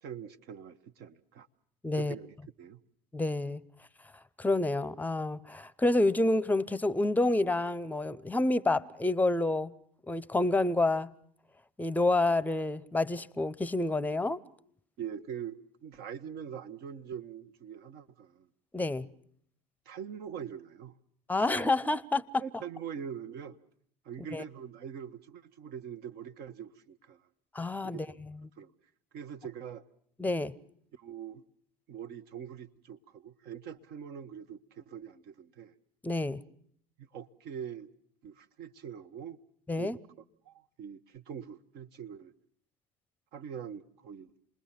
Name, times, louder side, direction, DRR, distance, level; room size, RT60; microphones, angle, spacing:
voice 1, 0.0-1.5 1.9-2.8 15.0-18.5 19.8-20.9 21.4-21.5 22.4-23.6 24.0-27.2 27.8-28.2 28.6-28.7 29.1-29.8 30.9-31.4 31.9-35.7 37.0-37.9 38.2-39.4 39.8-39.9 40.4-42.3 43.3-44.3, right 8 dB, 50° right, 1.3 m, -43 dB
voice 2, 1.8-2.1 3.1-3.6 4.4-9.7 10.1-11.1 11.8-14.4 18.7-19.1 21.3-22.4 24.3-24.4 27.5-28.1 30.2-30.5 36.0-36.4 39.7-40.0, left 2 dB, 10° left, 0.9 m, -28 dB
29.0 x 21.0 x 5.9 m
figure-of-eight pair, 65°, 20 cm